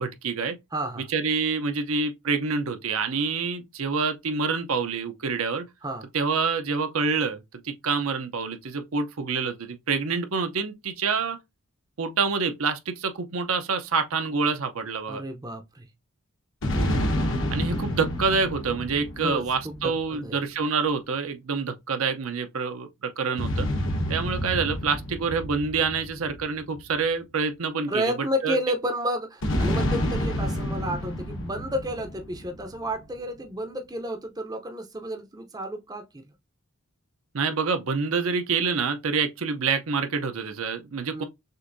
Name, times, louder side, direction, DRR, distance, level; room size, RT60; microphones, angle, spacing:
voice 1, 0.0-0.6 1.1-5.7 6.1-11.4 12.0-15.2 16.8-17.1 17.5-23.7 24.1-28.1 28.4-28.6 37.3-41.2, right 5 dB, 70° right, 0.7 m, -27 dB
voice 2, 0.7-1.1 5.8-6.1 15.1-15.9 19.2-20.4 27.9-36.3 41.1-41.2, equal, 15° right, 0.6 m, -31 dB
sound 1, 16.6-20.2 23.4-27.0 29.4-32.8, left 1 dB, 60° left, 1.0 m, -29 dB
6.4 x 2.6 x 2.6 m
head